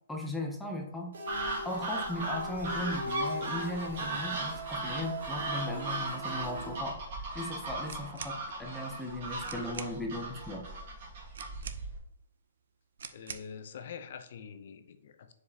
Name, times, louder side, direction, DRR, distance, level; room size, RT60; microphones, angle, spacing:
voice 1, 0.1-1.1 1.6-7.0 7.3-10.6, left 1 dB, 5° left, 0 dB, 0.6 m, -37 dB
sound 1, 1.1-6.8, equal, 90° right, 1.1 m, -40 dB
sound 2, 1.3-12.0, right 2 dB, 40° right, 1.9 m, -38 dB
sound 3, 7.8-8.4 9.1-9.2 9.4-10.0 11.3-12.1 13.0-13.5, right 6 dB, 65° right, 0.5 m, -44 dB
voice 2, 13.1-15.3, left 7 dB, 45° left, 9 dB, 0.6 m, -45 dB
7.3 x 4.8 x 2.8 m, 0.79 s
hypercardioid pair, 175°, 0 cm